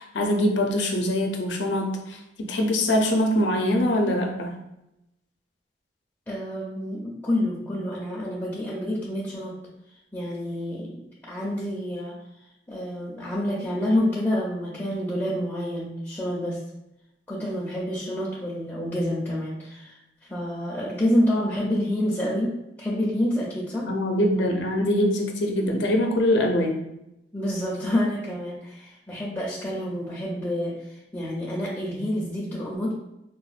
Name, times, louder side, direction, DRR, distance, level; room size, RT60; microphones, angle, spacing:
voice 1, 0.0-2.2 2.5-4.5 23.9-26.8, left 1 dB, 75° left, 2 dB, 0.5 m, -23 dB
voice 2, 6.3-9.5 10.1-12.2 12.7-16.6 17.3-23.9 27.3-32.9, left 1 dB, 10° left, -6 dB, 0.4 m, -28 dB
3.9 x 2.1 x 2.4 m, 0.87 s
head